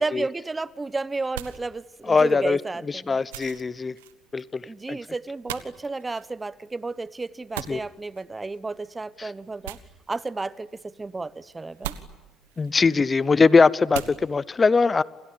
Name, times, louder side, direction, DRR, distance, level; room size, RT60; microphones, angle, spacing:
voice 1, 0.0-3.2 4.7-9.8 10.1-12.0, right 3 dB, 20° right, 0.9 m, -32 dB
sound 1, 0.7-14.5, right 13 dB, 85° right, 1.4 m, -43 dB
voice 2, 2.1-2.6 3.1-3.9 4.3-4.6 4.9-5.0 7.7-7.8 9.2-9.3 12.6-15.0, left 4 dB, 30° left, 0.8 m, -21 dB
29.0 x 28.0 x 7.1 m
hypercardioid pair, 65°, 0 cm